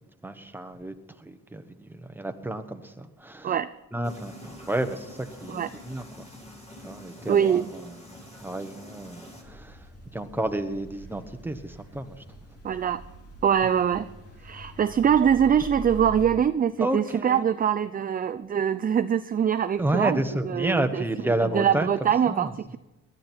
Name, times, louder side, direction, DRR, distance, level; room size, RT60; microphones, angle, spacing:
voice 1, 0.2-3.6 3.9-6.3 6.8-7.8 8.2-12.2 16.8-17.4 19.8-21.9 22.3-22.5, right 1 dB, 5° right, 8 dB, 1.2 m, -31 dB
sound 1, 4.0-9.4, left 1 dB, 20° left, 6.9 m, -45 dB
voice 2, 7.3-7.6 12.6-13.0 13.4-14.1 14.4-20.2 20.4-21.0 21.4-22.8, right 8 dB, 30° right, 13 dB, 0.4 m, -23 dB
sound 2, 9.4-16.3, equal, 50° left, 3.4 m, -44 dB
18.5 x 12.0 x 4.5 m, 1.0 s
cardioid pair, 90°, 30 cm